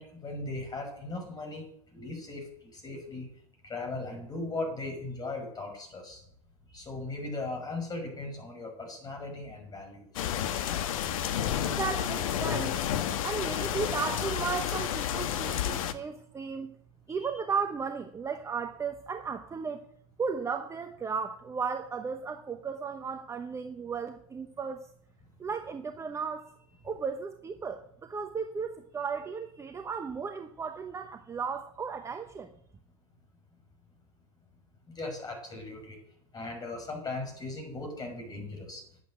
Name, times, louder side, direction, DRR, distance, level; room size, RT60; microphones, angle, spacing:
voice 1, 0.0-2.5 2.7-3.3 3.6-6.2 6.7-10.3 17.1-17.3 34.9-36.0 36.3-38.8, left 2 dB, 20° left, 2 dB, 5.9 m, -38 dB
sound 1, 10.2-15.9, left 10 dB, 70° left, 1.2 m, -30 dB
voice 2, 10.9-12.8 13.2-16.7 17.1-19.9 20.2-24.9 25.4-32.5, right 5 dB, 15° right, 7 dB, 0.9 m, -35 dB
10.5 x 8.4 x 7.8 m, 0.69 s
hypercardioid pair, 110°, 18 cm